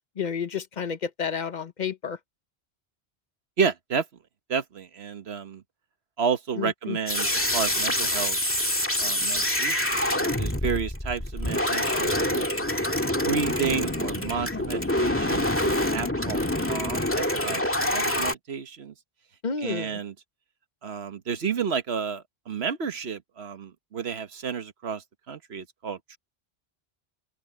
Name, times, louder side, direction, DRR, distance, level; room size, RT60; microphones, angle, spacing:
voice 1, 0.2-2.2 6.6-7.0 19.4-20.0, left 6 dB, 45° left, 1.0 m, -31 dB
voice 2, 3.6-4.0 4.5-5.6 6.2-8.4 9.0-9.8 10.1-12.7 13.2-18.9 19.6-20.1 20.8-26.2, right 6 dB, 75° right, 1.4 m, -31 dB
sound 1, 7.1-18.3, left 1 dB, 10° left, 2.0 m, -26 dB
open air
omnidirectional pair, 1.1 m